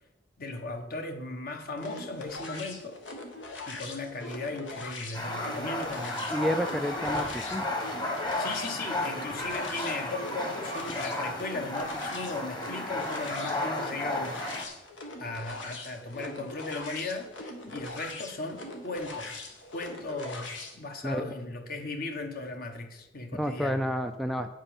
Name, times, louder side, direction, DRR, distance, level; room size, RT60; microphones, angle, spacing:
voice 1, 0.4-3.0 3.7-6.3 8.4-14.4 15.2-23.9, left 2 dB, 50° left, 5 dB, 1.2 m, -37 dB
sound 1, 1.8-20.8, left 2 dB, 80° left, 1.6 m, -41 dB
sound 2, 5.1-14.6, left 1 dB, 25° left, 1.3 m, -33 dB
voice 2, 6.3-7.7 21.0-21.3 23.4-24.5, equal, ahead, 7 dB, 0.4 m, -30 dB
8.9 x 5.5 x 7.0 m, 0.94 s
head